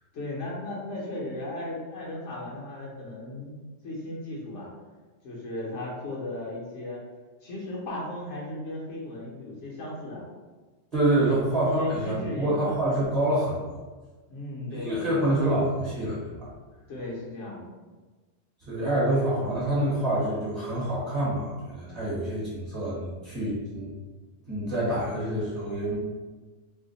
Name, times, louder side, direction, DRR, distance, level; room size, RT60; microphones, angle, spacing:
voice 1, 0.1-3.5 3.8-4.7 5.2-7.0 7.4-10.3 11.1-12.8 14.3-15.3 16.9-17.7, left 1 dB, 75° left, -4 dB, 1.1 m, -36 dB
voice 2, 10.9-13.8 14.7-16.5 18.6-23.9 24.4-26.0, right 1 dB, 35° right, -9 dB, 1.0 m, -27 dB
2.8 x 2.1 x 3.9 m, 1.3 s
omnidirectional pair, 1.3 m